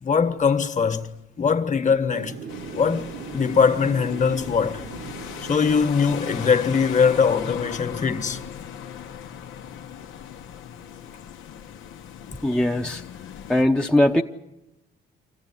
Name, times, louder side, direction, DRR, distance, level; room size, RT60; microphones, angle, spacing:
voice 1, 0.0-1.1 1.4-2.4 2.7-4.8 5.5-8.4, left 6 dB, 40° left, 1.5 m, -21 dB
Thunder / Rain, 2.1-8.5, right 7 dB, 65° right, 1.1 m, -40 dB
sound 1, 2.5-13.6, left 8 dB, 85° left, 1.0 m, -38 dB
voice 2, 12.4-13.0 13.5-14.2, left 1 dB, 5° left, 0.7 m, -20 dB
25.5 x 15.0 x 10.0 m
cardioid pair, 90°, 20 cm